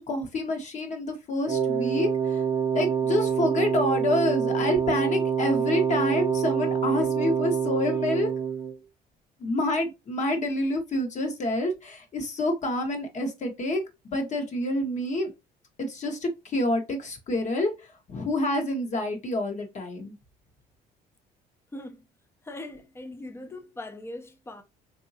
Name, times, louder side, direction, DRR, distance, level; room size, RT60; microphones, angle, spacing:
voice 1, 0.0-2.4 2.7-8.3 9.4-15.3 15.8-17.7 18.1-20.1, left 1 dB, 45° left, 1.1 m, -28 dB
Wind instrument woodwind instrument, 1.5-8.8, right 7 dB, 20° right, 0.7 m, -26 dB
voice 2, 21.7-22.1 22.4-24.6, left 2 dB, 15° left, 0.6 m, -40 dB
3.7 x 2.7 x 2.6 m
cardioid pair, 110°, 17 cm